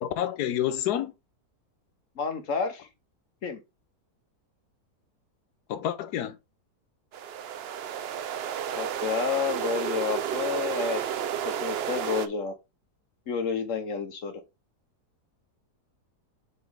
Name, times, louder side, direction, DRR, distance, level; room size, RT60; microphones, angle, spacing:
voice 1, 0.0-1.1 5.7-6.4, left 11 dB, 75° left, 1.2 m, -28 dB
voice 2, 2.2-2.9 3.4-3.6 8.8-11.0 11.4-12.5 13.3-14.4, left 6 dB, 55° left, 1.2 m, -30 dB
sound 1, 7.1-12.3, right 9 dB, 85° right, 0.5 m, -31 dB
7.1 x 4.2 x 3.4 m
omnidirectional pair, 1.7 m